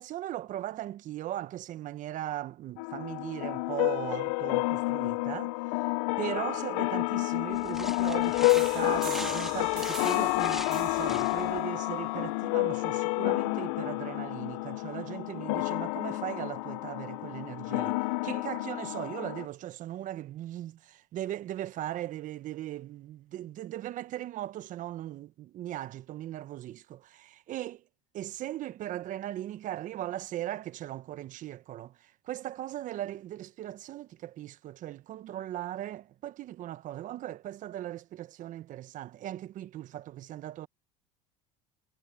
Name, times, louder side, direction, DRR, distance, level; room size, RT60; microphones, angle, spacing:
voice 1, 0.0-5.8 6.2-27.8 28.1-40.7, right 13 dB, 50° right, 1.2 m, -38 dB
sound 1, 2.8-19.5, left 26 dB, 75° left, 0.6 m, -30 dB
sound 2, 7.5-11.6, equal, ahead, 2.4 m, -42 dB
sound 3, 8.5-13.9, right 27 dB, 65° right, 0.5 m, -46 dB
supercardioid pair, 95°, 17 cm